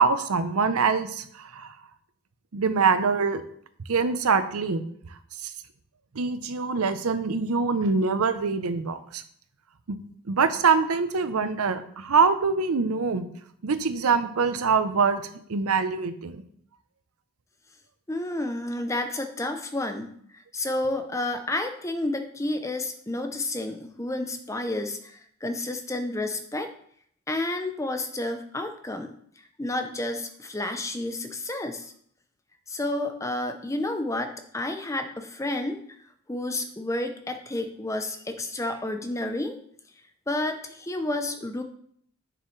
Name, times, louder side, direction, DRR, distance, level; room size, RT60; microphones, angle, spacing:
voice 1, 0.0-1.8 2.5-3.4 3.9-4.8 5.4-5.5 6.1-9.2 9.9-10.0 10.3-13.3 13.6-15.2 15.5-16.4, right 5 dB, 85° right, 11 dB, 0.6 m, -24 dB
voice 2, 18.1-26.7 27.3-31.9 32.7-35.8 36.3-39.6 40.3-41.6, left 2 dB, 15° left, 7 dB, 0.5 m, -30 dB
7.3 x 6.9 x 3.2 m, 0.65 s
head